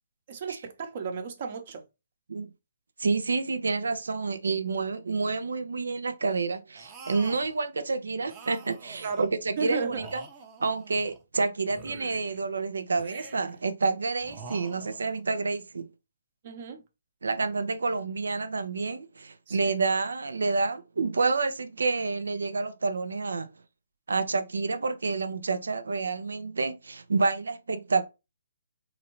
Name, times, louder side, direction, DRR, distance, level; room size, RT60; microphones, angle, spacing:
voice 1, 0.3-1.8 9.0-9.2 9.6-10.1 16.4-16.8 19.5-19.8, right 5 dB, 45° right, 1.0 m, -34 dB
voice 2, 3.0-10.2 10.6-15.9 17.2-23.5 24.1-28.1, right 4 dB, 90° right, 0.7 m, -29 dB
sound 1, 6.8-7.6 8.3-9.4 9.9-11.2 11.7-12.4 13.0-13.7 14.2-15.2, right 4 dB, 20° right, 0.8 m, -47 dB
4.0 x 2.6 x 3.1 m
hypercardioid pair, 155°, 0 cm